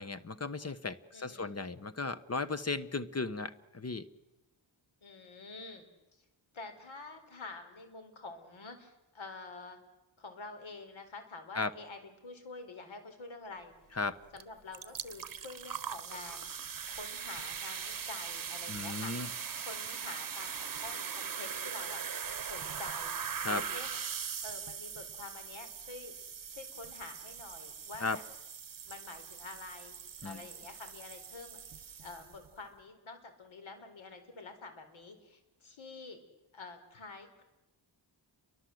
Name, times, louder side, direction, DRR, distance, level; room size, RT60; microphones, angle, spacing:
voice 1, 0.0-4.1 11.5-11.7 14.0-14.2 18.7-19.3 23.4-23.6 28.0-28.2 30.2-30.4, left 3 dB, 30° left, 14 dB, 1.2 m, -36 dB
voice 2, 1.1-1.6 5.0-5.8 6.1-6.2 6.5-9.8 10.2-13.7 14.3-16.5 16.9-19.1 19.6-22.0 22.4-24.0 24.4-26.1 26.5-28.2 28.9-31.6 32.0-36.2 36.5-37.4, left 3 dB, 80° left, 7 dB, 4.5 m, -48 dB
sound 1, 14.4-14.5 14.7-32.5, right 7 dB, 45° right, 1.1 m, -41 dB
30.0 x 23.5 x 7.9 m, 1.0 s
wide cardioid pair, 90°, 46 cm